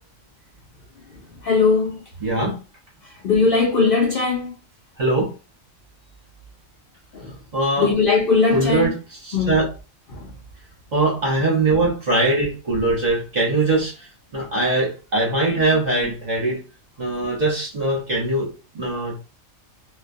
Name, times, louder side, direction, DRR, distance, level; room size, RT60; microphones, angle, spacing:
voice 1, 1.4-2.0 3.2-4.5 7.1-7.3 7.8-8.9 9.3-9.6 10.1-10.3, left 4 dB, 60° left, 0.6 m, -19 dB
voice 2, 2.2-2.6 5.0-5.3 7.5-7.9 8.5-9.7 10.9-16.6 17.0-19.2, right 2 dB, 40° right, 0.8 m, -22 dB
2.2 x 2.2 x 2.6 m
omnidirectional pair, 1.4 m